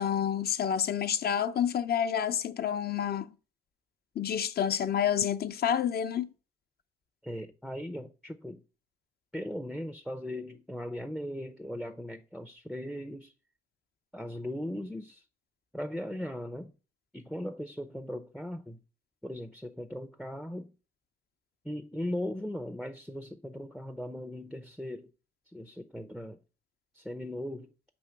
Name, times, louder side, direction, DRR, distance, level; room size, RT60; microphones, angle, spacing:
voice 1, 0.0-3.3 4.2-6.3, left 9 dB, 50° left, 0.6 m, -29 dB
voice 2, 7.2-8.6 9.3-13.3 14.1-15.2 15.7-16.7 17.1-18.8 19.2-20.7 21.6-25.1 25.5-26.4 26.9-27.7, left 1 dB, ahead, 0.5 m, -38 dB
7.0 x 3.0 x 5.8 m
cardioid pair, 90°, 20 cm